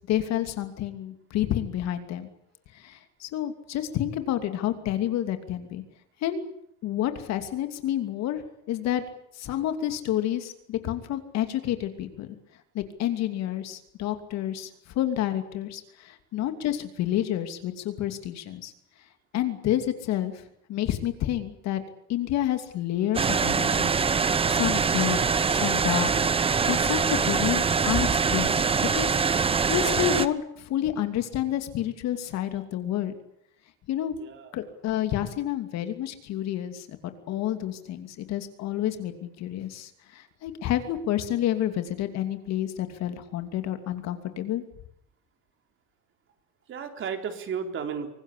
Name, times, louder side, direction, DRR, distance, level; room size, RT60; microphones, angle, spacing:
voice 1, 0.1-2.3 2.7-5.8 6.2-6.5 6.8-8.4 8.7-9.0 9.4-12.4 12.7-14.7 14.9-18.7 19.3-20.4 20.7-21.8 22.1-23.9 24.5-25.2 25.5-26.1 26.7-28.5 28.8-29.2 29.7-33.1 33.9-34.1 34.5-44.6, left 12 dB, 45° left, 8 dB, 2.8 m, -29 dB
sound 1, 23.1-30.3, right 5 dB, 15° right, 1.0 m, -24 dB
voice 2, 34.2-34.5 46.7-48.1, right 6 dB, 35° right, 6 dB, 4.0 m, -33 dB
25.5 x 19.0 x 8.5 m, 0.72 s
supercardioid pair, 140°, 37 cm